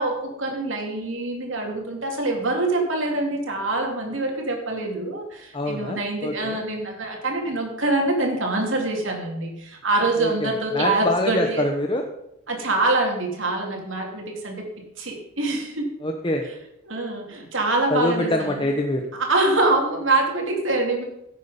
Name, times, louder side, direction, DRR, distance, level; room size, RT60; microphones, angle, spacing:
voice 1, 0.0-11.7 12.5-14.7 15.0-15.9 16.8-18.7 19.1-21.0, right 2 dB, 65° right, 1 dB, 3.3 m, -25 dB
voice 2, 5.5-6.6 10.2-12.1 16.0-16.4 17.9-19.1, left 1 dB, 25° left, 3 dB, 0.9 m, -25 dB
16.5 x 8.3 x 5.3 m, 0.84 s
head